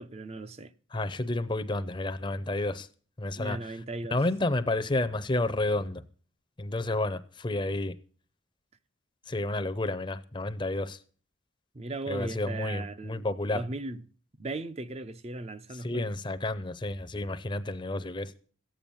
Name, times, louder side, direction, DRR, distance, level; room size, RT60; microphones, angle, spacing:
voice 1, 0.0-0.7 3.4-4.2 11.7-13.3 13.5-14.0 14.4-16.1, right 2 dB, 30° right, 0.5 m, -37 dB
voice 2, 0.9-2.9 3.2-3.6 4.1-6.0 6.6-8.0 9.3-11.0 12.1-13.6 15.7-18.3, left 2 dB, 25° left, 0.6 m, -30 dB
14.0 x 9.0 x 7.0 m
head